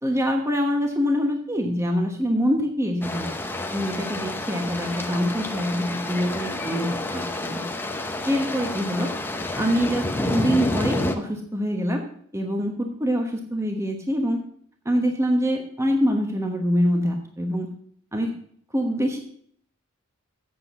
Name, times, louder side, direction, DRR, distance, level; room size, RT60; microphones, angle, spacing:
voice 1, 0.0-3.3 3.7-7.6 8.3-9.1 9.6-12.0 12.3-14.4 14.8-17.7 18.1-18.3 18.7-19.2, equal, 15° right, 3 dB, 1.1 m, -25 dB
sound 1, 3.0-11.1, left 2 dB, 10° left, 0.8 m, -29 dB
7.8 x 7.8 x 6.9 m, 0.63 s
head